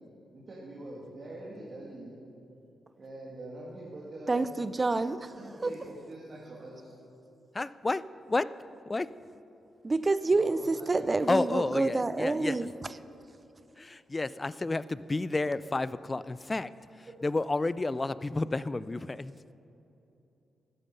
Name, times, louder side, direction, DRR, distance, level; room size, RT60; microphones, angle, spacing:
voice 1, 0.3-2.2 3.0-4.6 5.3-6.9 10.3-12.5 17.1-17.2, right 1 dB, 50° right, -5 dB, 2.3 m, -44 dB
voice 2, 4.3-5.2 5.6-5.7 9.8-12.7, right 3 dB, 35° right, 13 dB, 0.5 m, -27 dB
voice 3, 7.5-8.0 8.3-8.6 8.9-9.1 11.3-12.6 13.8-16.7 17.0-19.3, left 2 dB, 30° left, 17 dB, 0.4 m, -30 dB
13.0 x 10.0 x 5.3 m, 2.9 s
supercardioid pair, 50°, 0 cm